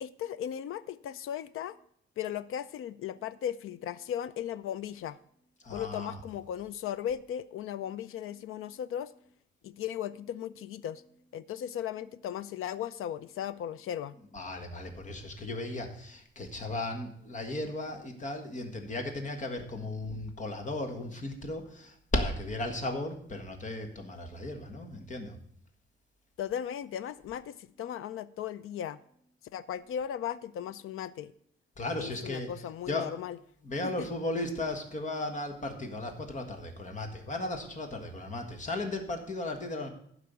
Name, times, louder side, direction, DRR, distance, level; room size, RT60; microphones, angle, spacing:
voice 1, 0.0-1.8 2.2-5.2 5.7-9.1 9.6-11.0 11.3-14.1 26.4-29.0 29.5-31.3 31.9-33.4 33.8-34.1, left 10 dB, 85° left, 15 dB, 0.5 m, -37 dB
voice 2, 5.6-6.2 14.3-25.4 31.8-33.2 33.6-39.9, left 2 dB, 35° left, 5 dB, 1.6 m, -36 dB
12.0 x 4.8 x 8.2 m, 0.66 s
wide cardioid pair, 170°, 21 cm